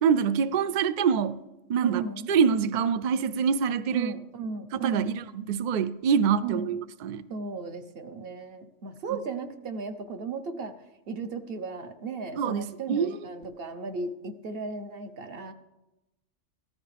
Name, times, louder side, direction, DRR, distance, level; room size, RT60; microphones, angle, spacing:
voice 1, 0.0-1.4 1.7-2.0 2.3-4.1 4.7-7.3 12.4-13.2, right 7 dB, 75° right, 0.4 m, -25 dB
voice 2, 1.8-2.3 3.9-5.3 6.4-6.8 7.3-10.8 11.1-15.5, right 4 dB, 50° right, 1.1 m, -35 dB
15.0 x 13.0 x 3.3 m
omnidirectional pair, 1.3 m